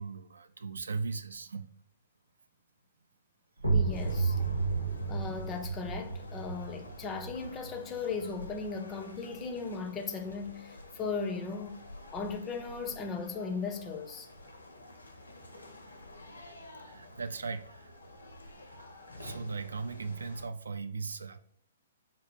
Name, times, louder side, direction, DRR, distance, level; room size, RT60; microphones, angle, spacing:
voice 1, 0.0-1.7 6.5-6.6 16.8-17.9 19.2-21.4, right 4 dB, 65° right, 0.3 m, -38 dB
sound 1, 3.6-9.1, right 4 dB, 85° right, 0.9 m, -33 dB
voice 2, 3.7-4.4 5.1-11.8 12.1-14.3, left 4 dB, 20° left, 0.5 m, -37 dB
sound 2, 3.9-20.5, left 1 dB, 80° left, 0.8 m, -50 dB
4.9 x 2.2 x 2.9 m
figure-of-eight pair, 120°, 0 cm